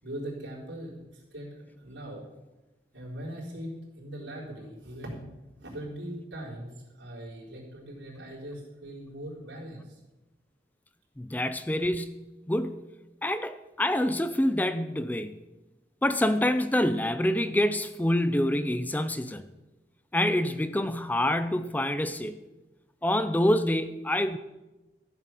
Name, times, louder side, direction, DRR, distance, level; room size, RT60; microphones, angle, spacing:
voice 1, 0.0-2.2 2.9-5.3 5.6-10.0, right 1 dB, 85° right, -4 dB, 4.2 m, -40 dB
voice 2, 11.2-12.8 13.2-15.3 16.0-19.4 20.1-22.4 23.0-24.4, left 1 dB, 10° left, 12 dB, 0.4 m, -26 dB
14.0 x 8.1 x 5.9 m, 1.0 s
head